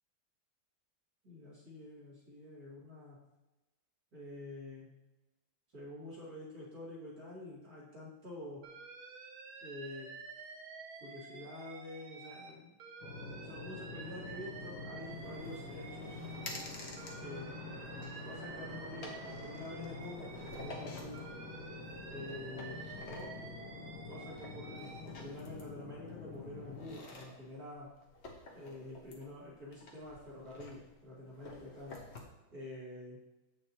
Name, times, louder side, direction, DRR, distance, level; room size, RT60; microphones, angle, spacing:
voice 1, 1.2-3.2 4.1-4.9 5.7-8.7 9.6-10.1 11.0-12.8 13.4-16.2 17.2-21.3 22.1-23.5 24.1-28.0 28.5-32.0 32.5-33.2, left 1 dB, 45° right, -6 dB, 2.9 m, -48 dB
Alarm, 8.6-12.5 12.8-16.7 17.0-20.8 21.1-25.0, right 4 dB, 75° right, 1.7 m, -50 dB
sound 1, 13.0-27.0, left 3 dB, 90° left, 2.2 m, -47 dB
sound 2, 15.0-32.2, left 2 dB, 40° left, 1.1 m, -52 dB
8.2 x 6.4 x 2.9 m, 1.1 s
omnidirectional pair, 2.3 m